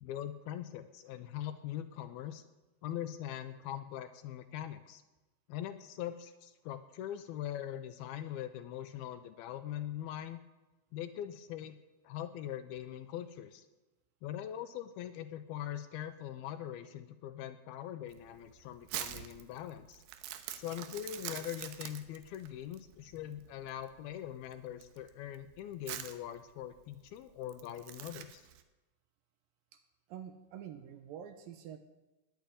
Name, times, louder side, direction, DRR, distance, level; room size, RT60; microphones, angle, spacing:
voice 1, 0.0-2.4 2.8-5.0 5.5-10.4 10.9-11.8 12.0-13.7 14.2-20.0 20.6-28.4, left 11 dB, 80° left, 10 dB, 2.4 m, -42 dB
Crumpling crinkling, 18.1-28.6, right 11 dB, 85° right, 3.1 m, -46 dB
voice 2, 30.1-31.8, right 9 dB, 70° right, 7 dB, 2.4 m, -47 dB
19.5 x 7.1 x 9.1 m, 1.1 s
omnidirectional pair, 4.8 m